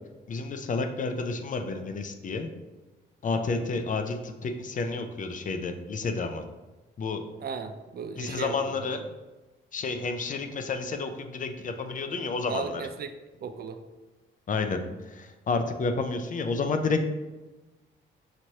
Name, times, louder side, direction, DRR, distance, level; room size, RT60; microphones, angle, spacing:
voice 1, 0.3-2.5 3.2-6.4 7.0-7.2 8.2-9.0 9.7-12.7 14.5-14.8 15.1-17.0, left 4 dB, 40° left, 7 dB, 0.5 m, -30 dB
voice 2, 7.4-9.0 12.5-13.1 13.4-13.8, right 6 dB, 50° right, 8 dB, 0.4 m, -36 dB
5.8 x 3.1 x 2.8 m, 1.1 s
cardioid pair, 90°, 20 cm